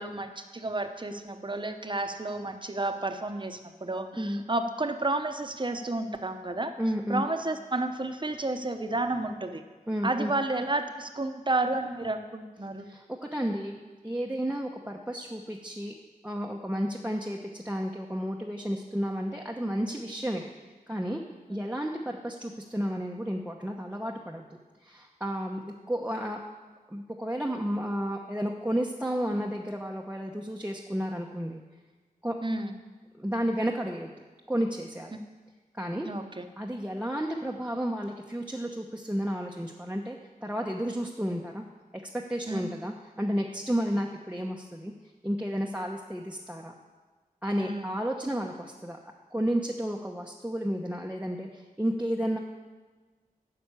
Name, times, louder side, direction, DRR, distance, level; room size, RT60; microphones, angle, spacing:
voice 1, 0.0-6.7 7.1-9.6 10.0-12.9 21.5-21.6 32.4-32.7 36.0-36.4 42.5-42.6 47.6-47.9, right 2 dB, 30° right, 7 dB, 0.9 m, -31 dB
voice 2, 6.8-7.2 9.9-10.3 12.9-13.7 14.0-15.9 16.2-20.5 20.9-21.2 21.5-24.4 24.8-26.4 26.9-31.6 32.2-32.3 33.2-34.1 34.5-35.2 35.7-36.1 36.6-40.2 40.4-41.6 42.1-44.9 45.2-46.7 47.4-49.0 49.3-52.4, equal, 10° right, 0 dB, 0.9 m, -32 dB
10.0 x 6.0 x 8.2 m, 1.3 s
wide cardioid pair, 75°, 15 cm